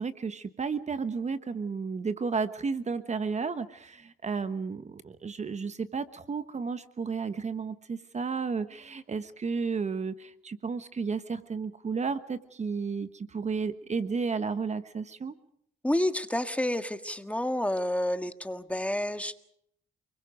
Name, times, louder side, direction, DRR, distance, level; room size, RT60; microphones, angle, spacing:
voice 1, 0.0-15.3, right 5 dB, 35° right, 11 dB, 1.2 m, -32 dB
voice 2, 15.8-19.4, left 1 dB, 5° left, 9 dB, 1.7 m, -29 dB
29.5 x 22.0 x 5.1 m, 0.71 s
cardioid pair, 90°, 20 cm